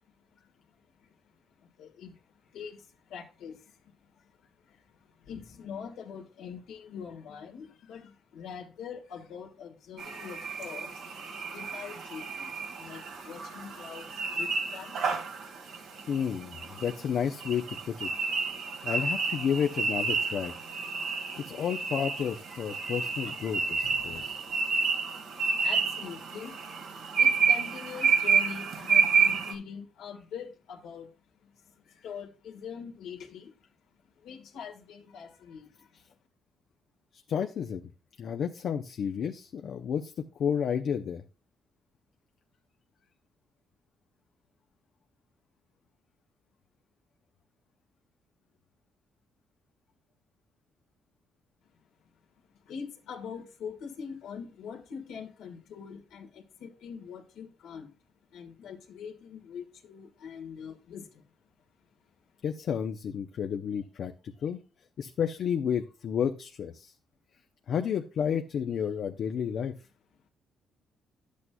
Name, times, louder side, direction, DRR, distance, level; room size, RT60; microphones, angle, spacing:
voice 1, 1.8-2.1 2.5-2.8 3.1-3.6 5.3-10.9 11.5-12.5 12.8-14.1 14.3-14.9 23.3-23.4 23.8-24.3 25.6-26.5 27.2-31.1 32.0-33.5 34.2-35.7 52.7-57.9 58.3-61.0, left 7 dB, 85° left, 2 dB, 1.6 m, -43 dB
sound 1, 10.0-29.5, right 5 dB, 75° right, 1.8 m, -30 dB
voice 2, 15.7-18.1 18.8-20.5 21.5-24.4 37.1-37.8 38.2-40.1 40.4-41.2 62.4-64.6 65.0-66.9 67.7-69.7, left 8 dB, 65° left, 6 dB, 0.6 m, -31 dB
11.0 x 8.3 x 2.2 m, 0.32 s
cardioid pair, 90°, 0 cm